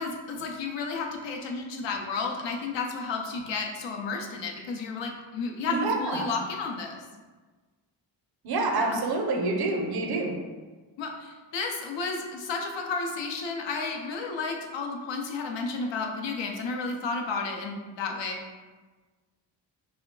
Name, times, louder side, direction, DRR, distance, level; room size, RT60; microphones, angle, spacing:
voice 1, 0.0-7.0 8.8-9.0 11.0-18.4, left 4 dB, 70° left, 2 dB, 0.6 m, -32 dB
voice 2, 5.6-6.3 8.4-10.4, right 3 dB, 55° right, 2 dB, 0.6 m, -27 dB
2.2 x 2.1 x 3.6 m, 1.3 s
cardioid pair, 75°, 46 cm